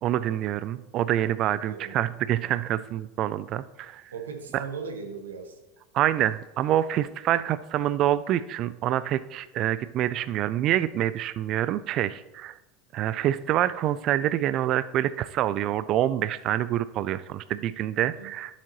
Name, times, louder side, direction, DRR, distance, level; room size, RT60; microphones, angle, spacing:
voice 1, 0.0-4.1 4.5-4.6 5.9-12.6 12.9-18.6, right 12 dB, 50° right, 15 dB, 0.3 m, -26 dB
voice 2, 1.5-2.0 4.1-5.6 18.0-18.3, right 5 dB, 85° right, 6 dB, 1.1 m, -38 dB
11.5 x 7.1 x 3.0 m, 0.99 s
hypercardioid pair, 80°, 0 cm